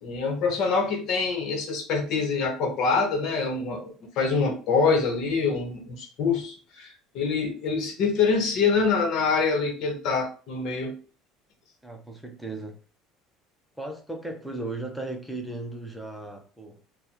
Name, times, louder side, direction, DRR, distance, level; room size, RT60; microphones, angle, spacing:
voice 1, 0.0-11.0, left 4 dB, 60° left, 1.3 m, -25 dB
voice 2, 11.8-12.8 13.8-16.8, right 2 dB, ahead, 0.8 m, -36 dB
3.3 x 2.3 x 4.2 m
cardioid pair, 120°, 0 cm